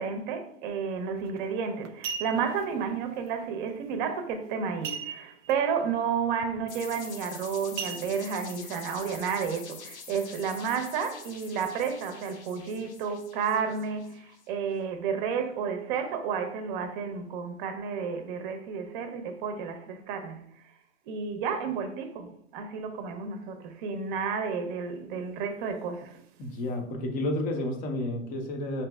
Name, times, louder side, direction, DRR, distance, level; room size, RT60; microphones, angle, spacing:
voice 1, 0.0-20.4 21.1-26.2, right 6 dB, 45° right, 0.7 m, -31 dB
sound 1, 1.2-1.4 1.8-2.6 4.8-5.5 5.8-5.9 6.4-6.7 7.8-8.6 9.1-9.2, right 6 dB, 85° right, 0.5 m, -37 dB
sound 2, 6.7-14.5, left 6 dB, 65° left, 1.0 m, -46 dB
voice 2, 26.4-28.9, left 1 dB, 25° left, 0.6 m, -31 dB
5.1 x 2.8 x 2.3 m
hypercardioid pair, 140°, 36 cm